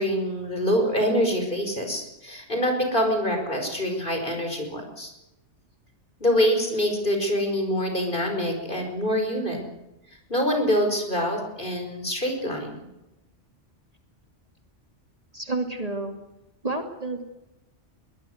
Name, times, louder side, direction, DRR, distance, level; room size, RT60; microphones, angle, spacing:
voice 1, 0.0-5.1 6.2-9.7 10.3-12.8, equal, 45° left, 4 dB, 5.8 m, -25 dB
voice 2, 15.3-16.2 16.6-17.2, right 2 dB, 30° right, 5 dB, 2.7 m, -30 dB
22.0 x 20.0 x 8.0 m, 0.94 s
omnidirectional pair, 1.2 m